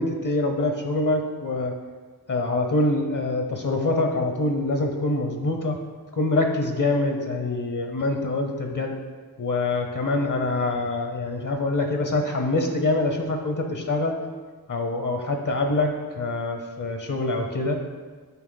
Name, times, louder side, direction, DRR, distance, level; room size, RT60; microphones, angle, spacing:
voice 1, 0.0-1.7 2.3-5.8 6.1-8.9 9.4-14.1 14.7-17.8, left 2 dB, 50° left, 4 dB, 0.8 m, -25 dB
8.3 x 4.0 x 3.9 m, 1.4 s
wide cardioid pair, 65°, 40 cm